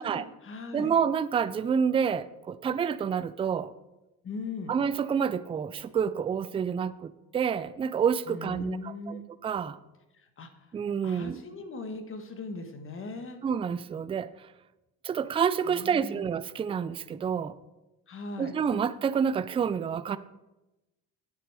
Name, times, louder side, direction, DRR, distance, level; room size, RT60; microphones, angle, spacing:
voice 1, 0.0-0.9 4.2-4.7 8.3-9.2 10.1-10.7 11.0-13.4 15.7-16.2 18.1-18.5, left 3 dB, 35° left, 8 dB, 1.3 m, -39 dB
voice 2, 0.7-3.7 4.7-9.8 10.7-11.4 13.4-14.5 15.0-17.5 18.4-20.2, right 7 dB, 15° right, 14 dB, 0.3 m, -28 dB
8.8 x 8.4 x 4.8 m, 0.99 s
cardioid pair, 105°, 35 cm